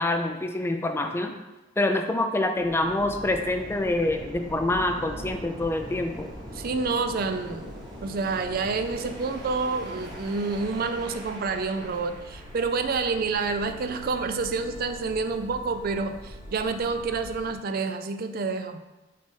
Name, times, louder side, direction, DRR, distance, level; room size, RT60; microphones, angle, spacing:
voice 1, 0.0-1.3 1.8-6.3, left 2 dB, 15° left, 5 dB, 0.4 m, -26 dB
sound 1, 2.5-17.6, equal, 25° right, 1.2 m, -41 dB
voice 2, 6.5-7.7 8.0-18.8, right 4 dB, 50° right, 8 dB, 0.4 m, -28 dB
6.4 x 4.0 x 3.6 m, 1.1 s
head